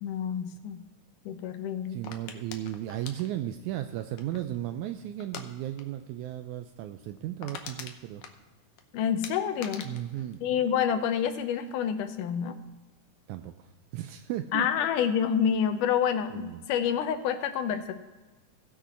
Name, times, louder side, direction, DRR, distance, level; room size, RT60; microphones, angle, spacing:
voice 1, 0.0-0.8 1.3-2.0 8.9-9.9 10.4-12.6 14.5-17.9, left 8 dB, 90° left, 9 dB, 2.3 m, -28 dB
voice 2, 1.9-8.2 9.8-10.7 13.3-14.7 16.3-16.6, right 12 dB, 80° right, 8 dB, 1.9 m, -35 dB
sound 1, 2.0-4.6 5.2-5.5 5.8-6.0 6.3-6.4 6.8-6.9 7.1-8.8 9.2-11.3 11.6-12.0, left 7 dB, 70° left, 1.4 m, -44 dB
17.5 x 6.1 x 4.2 m, 1.2 s
omnidirectional pair, 3.6 m